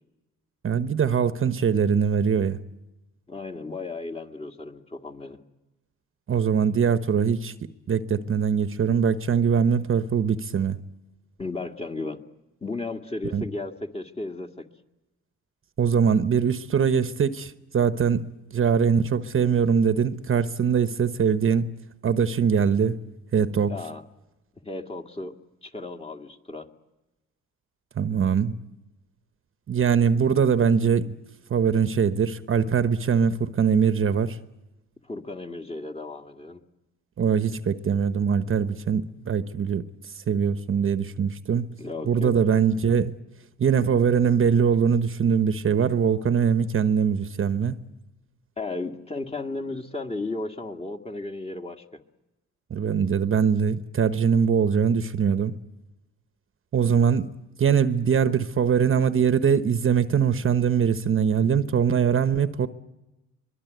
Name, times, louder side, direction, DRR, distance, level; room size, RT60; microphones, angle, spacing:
voice 1, 0.6-2.6 6.3-7.5 7.9-10.8 13.3-13.4 15.8-21.7 22.0-23.0 23.3-23.7 28.0-28.6 29.7-31.2 31.5-34.4 37.2-39.8 40.3-41.7 42.1-43.2 43.6-47.7 52.7-55.6 56.7-57.3 57.6-62.7, right 7 dB, 45° right, 1.0 m, -22 dB
voice 2, 3.3-5.4 11.4-12.2 12.6-14.7 23.7-24.0 24.6-25.3 25.6-26.7 35.0-36.6 41.8-42.6 48.6-52.0, left 2 dB, 20° left, 2.1 m, -34 dB
24.0 x 22.0 x 9.4 m
cardioid pair, 90°, 30 cm